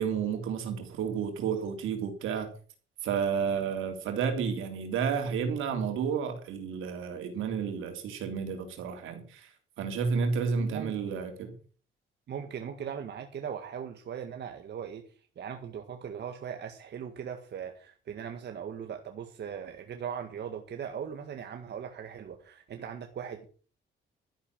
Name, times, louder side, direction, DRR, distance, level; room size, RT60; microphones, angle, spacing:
voice 1, 0.0-2.5 3.0-9.5 9.8-11.5, right 6 dB, 85° right, 3.5 m, -31 dB
voice 2, 10.6-11.2 12.3-15.0 15.4-23.5, right 8 dB, 60° right, 1.8 m, -39 dB
12.5 x 10.0 x 6.1 m
cardioid pair, 90°, 20 cm